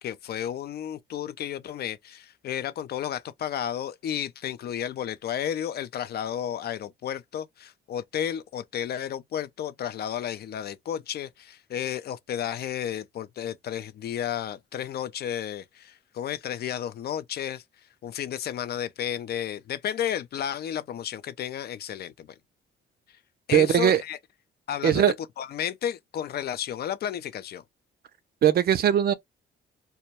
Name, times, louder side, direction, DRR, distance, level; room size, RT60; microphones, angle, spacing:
voice 1, 0.0-17.6 18.0-22.4 23.5-24.2 24.7-25.0 25.4-27.6, left 10 dB, 55° left, 0.4 m, -32 dB
voice 2, 23.5-24.0 24.8-25.1 28.4-29.1, right 10 dB, 50° right, 0.4 m, -20 dB
2.2 x 2.1 x 2.7 m
cardioid pair, 90°, 20 cm